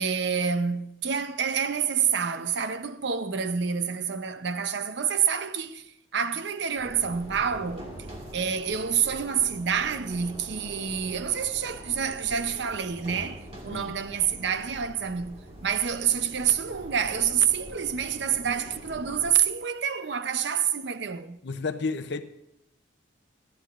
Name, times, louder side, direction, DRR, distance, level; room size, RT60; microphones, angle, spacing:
voice 1, 0.0-7.9 8.3-21.4, right 7 dB, 55° right, 0.6 m, -28 dB
sound 1, 6.8-19.3, right 1 dB, 30° right, 1.7 m, -44 dB
voice 2, 21.4-22.2, left 4 dB, 55° left, 0.6 m, -31 dB
19.5 x 12.5 x 2.5 m
head